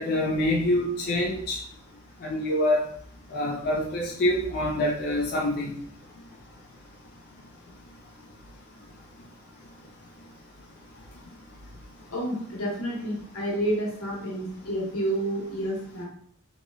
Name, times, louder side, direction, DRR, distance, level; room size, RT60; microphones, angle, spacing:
voice 1, 0.0-1.6 2.2-2.8 3.3-5.7, left 1 dB, 50° left, -2 dB, 0.4 m, -25 dB
voice 2, 12.1-16.0, right 1 dB, 85° left, -4 dB, 1.2 m, -29 dB
2.9 x 2.9 x 2.3 m, 0.62 s
head